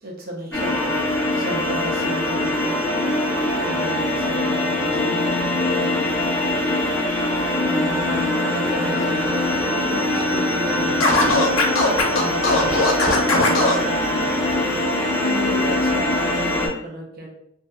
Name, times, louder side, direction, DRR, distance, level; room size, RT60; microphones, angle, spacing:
voice 1, 0.0-6.0 7.6-11.8 12.1-14.4 15.2-17.3, right 1 dB, 50° right, 0 dB, 0.6 m, -34 dB
sound 1, 0.5-16.7, left 1 dB, 10° left, 0.6 m, -22 dB
Scratching (performance technique), 11.0-13.8, left 2 dB, 75° left, 0.5 m, -19 dB
2.6 x 2.2 x 2.3 m, 0.73 s
head